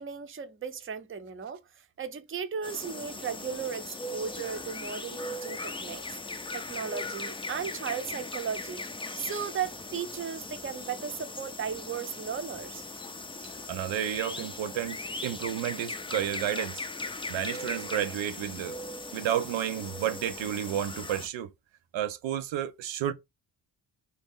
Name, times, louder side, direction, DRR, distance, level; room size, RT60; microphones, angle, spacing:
voice 1, 0.0-1.6 2.0-6.0 6.5-8.8 9.2-12.8, right 7 dB, 30° right, 0.6 m, -36 dB
sound 1, 2.6-21.3, left 2 dB, 15° left, 0.4 m, -39 dB
voice 2, 13.7-15.0 15.2-16.8 17.3-18.8 19.1-21.5 21.9-23.1, right 10 dB, 80° right, 0.6 m, -31 dB
2.7 x 2.7 x 3.5 m
cardioid pair, 60°, 45 cm